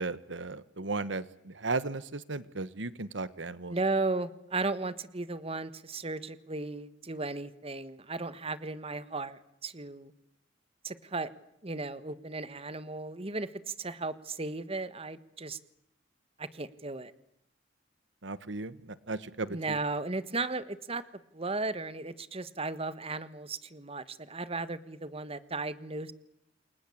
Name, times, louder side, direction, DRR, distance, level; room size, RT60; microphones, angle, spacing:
voice 1, 0.0-3.8 18.2-19.8, right 3 dB, 75° right, 16 dB, 1.4 m, -36 dB
voice 2, 3.7-10.1 10.8-11.3 11.6-15.6 16.4-17.1 19.5-21.0 21.3-26.1, right 3 dB, 30° right, 14 dB, 1.5 m, -35 dB
29.5 x 22.5 x 8.6 m, 0.76 s
head